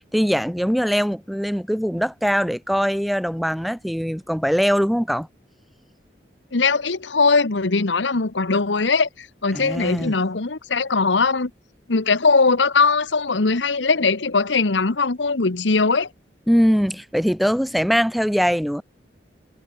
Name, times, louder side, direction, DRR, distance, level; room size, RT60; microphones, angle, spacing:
voice 1, 0.1-5.3 9.5-10.1 16.5-18.8, equal, ahead, 4.7 m, -21 dB
voice 2, 6.5-11.5 11.9-16.1, left 4 dB, 90° left, 1.2 m, -20 dB
head